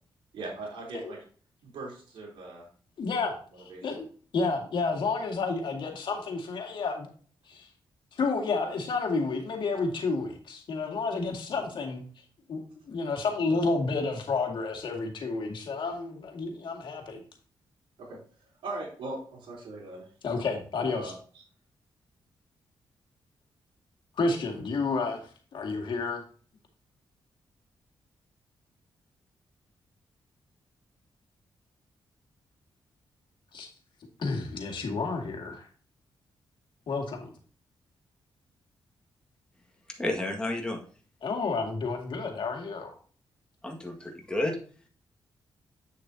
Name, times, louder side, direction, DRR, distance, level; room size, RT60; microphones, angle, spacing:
voice 1, 0.3-1.2 1.6-2.7 3.7-3.9 18.0-20.1 20.7-21.4, right 2 dB, 85° right, -4 dB, 3.3 m, -40 dB
voice 2, 3.0-3.3 3.8-4.0 4.3-7.1 7.5-7.7 8.1-12.0 12.5-17.2 20.2-21.1 24.2-26.2 33.5-33.7 34.2-35.6 36.9-37.3 41.2-43.0, left 4 dB, 65° left, 2 dB, 2.1 m, -30 dB
voice 3, 39.9-40.8 43.6-44.6, left 1 dB, 10° left, 1 dB, 1.7 m, -31 dB
8.4 x 6.7 x 2.8 m, 0.42 s
cardioid pair, 85°, 9 cm